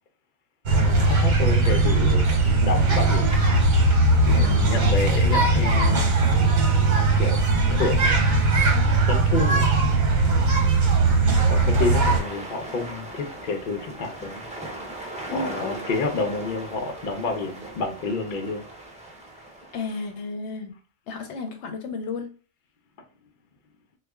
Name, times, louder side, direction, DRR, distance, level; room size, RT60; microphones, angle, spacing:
voice 1, 0.7-3.3 4.3-6.1 6.9-7.4 7.7-8.1 9.1-9.8 11.5-14.4 15.3-18.7, left 3 dB, 50° left, 5 dB, 0.7 m, -29 dB
sound 1, 0.7-12.2, right 2 dB, 50° right, 0.8 m, -19 dB
voice 2, 4.4-4.9 10.6-11.6 15.3-15.8 19.7-20.7 21.1-22.3, left 4 dB, 75° left, 5 dB, 0.9 m, -34 dB
sound 2, 11.7-20.2, right 1 dB, 10° right, 0.5 m, -38 dB
3.2 x 2.1 x 3.4 m, 0.36 s
omnidirectional pair, 1.2 m